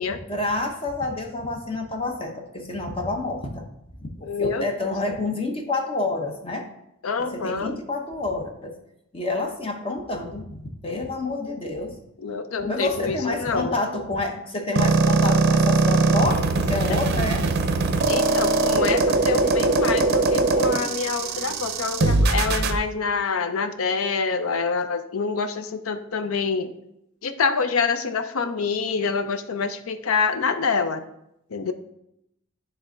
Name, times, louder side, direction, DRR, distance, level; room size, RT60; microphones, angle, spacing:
voice 1, 0.1-3.6 4.2-6.7 7.3-8.8 9.1-12.0 12.6-17.5, left 2 dB, 25° left, 3 dB, 0.7 m, -28 dB
voice 2, 4.2-4.6 7.0-7.8 12.2-13.8 16.9-17.0 18.1-26.7 27.2-31.0 31.5-31.7, left 5 dB, 90° left, 9 dB, 0.6 m, -26 dB
sound 1, 14.8-22.8, right 3 dB, 50° right, 0.5 m, -21 dB
sound 2, 15.8-22.3, right 1 dB, ahead, 1.3 m, -41 dB
9.6 x 3.4 x 3.9 m, 0.80 s
head